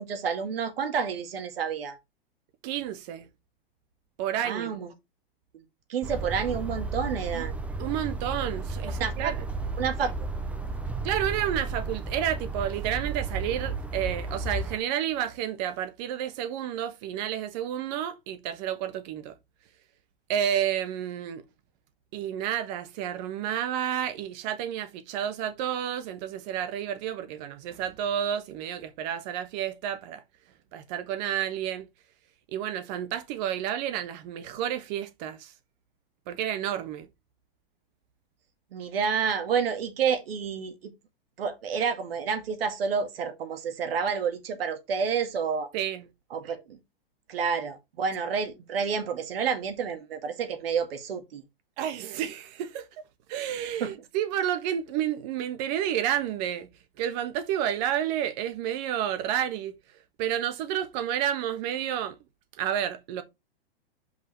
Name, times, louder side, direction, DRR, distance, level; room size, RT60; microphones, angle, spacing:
voice 1, 0.0-2.0 4.4-4.9 5.9-7.5 8.8-9.3 9.8-10.1 38.7-40.9 41.4-45.7 46.3-46.8 47.3-51.4 53.8-53.9, right 6 dB, 75° right, 2.2 m, -29 dB
voice 2, 2.6-3.3 4.2-4.8 7.3-7.4 7.8-9.4 11.0-19.3 20.3-21.4 22.1-30.2 30.7-31.9 32.5-35.5 36.3-37.1 45.7-46.0 51.8-53.0 53.3-56.7 57.0-62.2 62.5-63.2, right 10 dB, 45° right, 1.3 m, -30 dB
sound 1, 6.0-14.8, right 3 dB, 5° right, 0.6 m, -33 dB
5.5 x 4.9 x 4.8 m
hypercardioid pair, 135°, 30 cm